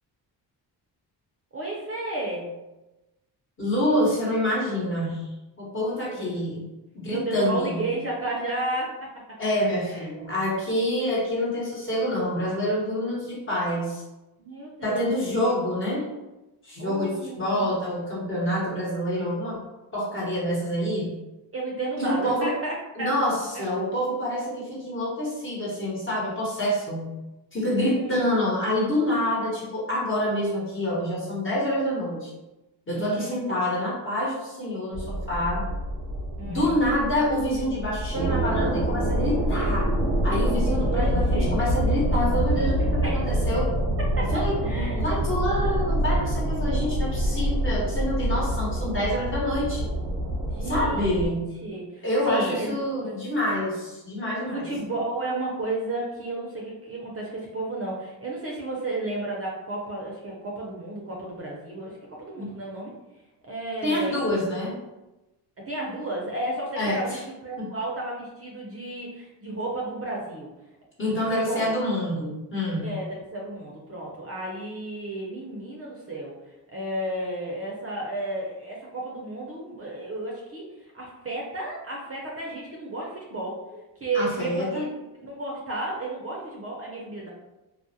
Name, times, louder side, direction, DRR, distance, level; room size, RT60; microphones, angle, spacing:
voice 1, 1.5-2.5 6.1-6.4 7.1-9.1 9.8-10.1 14.4-15.1 16.8-17.7 21.5-23.1 23.5-23.6 27.7-28.4 32.9-33.4 36.4-36.8 40.9-41.5 43.0-43.3 44.2-45.0 50.4-51.3 51.6-52.8 54.5-62.9 63.4-64.1 65.6-70.5 71.0-71.8 72.8-76.4 76.7-83.6 84.0-84.9 85.2-87.3, right 2 dB, 35° right, -3 dB, 0.6 m, -32 dB
voice 2, 3.6-6.7 6.9-7.8 9.4-14.0 14.8-16.0 16.6-19.6 19.9-21.2 22.0-22.5 23.0-27.2 27.5-32.3 32.9-35.7 36.5-39.9 40.2-43.7 44.3-49.9 50.6-51.5 52.0-54.7 62.4-62.5 63.8-64.8 66.8-67.2 67.6-67.7 71.0-73.0 84.1-84.9, left 1 dB, 30° left, -5 dB, 1.1 m, -27 dB
sound 1, 34.9-51.3, right 1 dB, 90° right, 0.7 m, -26 dB
2.3 x 2.1 x 2.7 m, 1.0 s
cardioid pair, 70°, 43 cm